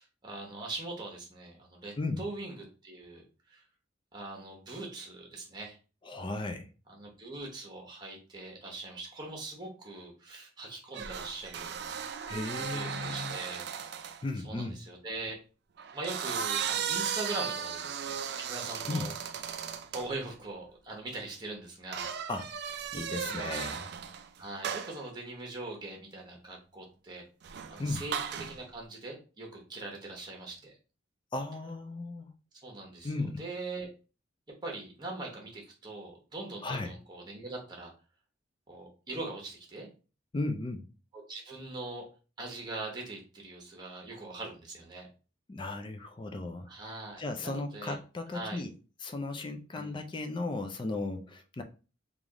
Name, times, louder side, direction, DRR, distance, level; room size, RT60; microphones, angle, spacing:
voice 1, 0.0-3.6 4.1-5.8 6.9-12.0 12.6-14.1 14.4-15.4 15.9-19.1 19.9-22.1 23.1-23.6 24.4-27.2 27.7-30.8 32.6-33.9 34.6-37.9 38.7-39.9 41.1-42.0 42.4-45.1 46.7-48.0 48.3-48.6 49.7-50.0, right 2 dB, 20° right, 1.0 m, -42 dB
voice 2, 6.0-6.7 12.3-13.3 14.2-14.8 18.9-19.1 22.3-22.5 22.9-23.9 27.8-28.0 31.3-32.3 33.0-33.4 36.6-36.9 40.3-40.9 45.5-46.7 47.2-48.7 49.0-51.6, left 2 dB, 25° left, 0.3 m, -35 dB
sound 1, 10.9-14.2 15.8-20.1 21.9-24.3 24.6-25.0 27.4-28.6, right 7 dB, 55° right, 0.3 m, -36 dB
3.4 x 2.5 x 3.6 m
head